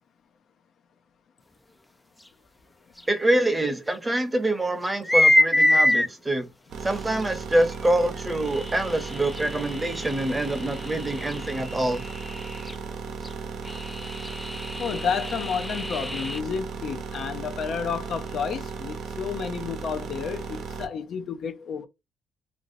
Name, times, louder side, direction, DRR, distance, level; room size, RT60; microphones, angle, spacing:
sound 1, 3.0-3.1 3.9-4.0 4.8-6.1 7.2-7.3 8.5-12.8 13.2-13.3 13.7-16.4, left 1 dB, 10° left, 0.3 m, -26 dB
voice 1, 3.1-6.5 6.8-12.0, right 1 dB, 15° right, 0.8 m, -25 dB
sound 2, 6.7-20.9, right 5 dB, 75° right, 0.7 m, -36 dB
voice 2, 14.8-21.9, left 6 dB, 65° left, 0.5 m, -31 dB
3.0 x 2.6 x 2.6 m
cardioid pair, 90°, 0 cm